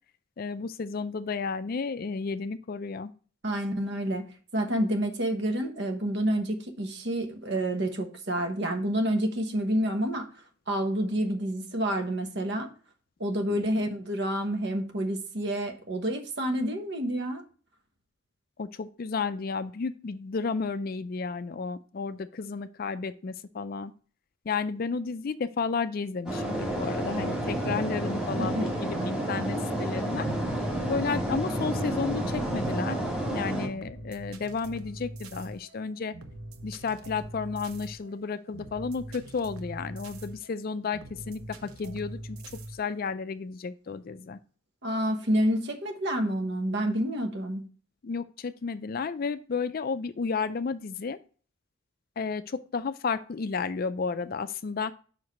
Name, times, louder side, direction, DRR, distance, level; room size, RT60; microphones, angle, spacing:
voice 1, 0.4-3.1 13.5-13.6 18.6-23.9 24.5-30.3 30.9-33.0 33.3-36.2 36.6-42.4 42.7-44.4 48.0-51.2 52.2-54.9, left 5 dB, 45° left, 13 dB, 0.4 m, -32 dB
voice 2, 3.4-4.3 4.5-10.2 10.7-12.7 13.2-17.4 28.4-28.7 44.8-47.6, right 1 dB, 55° right, 5 dB, 1.2 m, -28 dB
sound 1, 26.3-33.7, right 1 dB, 5° right, 1.5 m, -30 dB
sound 2, 33.7-43.0, right 1 dB, 90° right, 0.9 m, -44 dB
5.8 x 4.8 x 5.2 m, 0.40 s
head